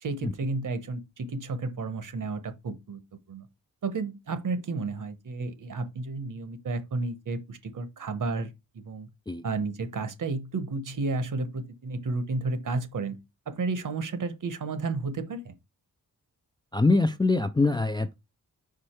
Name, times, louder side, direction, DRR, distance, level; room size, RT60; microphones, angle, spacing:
voice 1, 0.0-3.0 3.3-3.5 3.8-9.1 9.4-13.2 13.5-15.5, right 3 dB, 60° right, 1.0 m, -32 dB
voice 2, 16.7-18.2, left 3 dB, 15° left, 0.3 m, -24 dB
5.3 x 4.9 x 4.3 m
wide cardioid pair, 165°, 36 cm